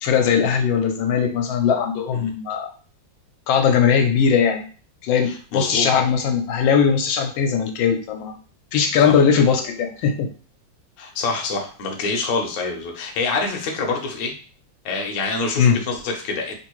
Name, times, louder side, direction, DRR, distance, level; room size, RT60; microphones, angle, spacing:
voice 1, 0.0-2.7 3.5-4.6 5.0-8.4 8.7-10.3 15.6-15.8, left 7 dB, 85° left, 4 dB, 1.3 m, -19 dB
voice 2, 5.3-5.9 8.9-9.2 11.0-14.3 14.8-16.5, left 3 dB, 60° left, 2 dB, 1.0 m, -26 dB
3.5 x 2.6 x 3.0 m, 0.39 s
omnidirectional pair, 2.1 m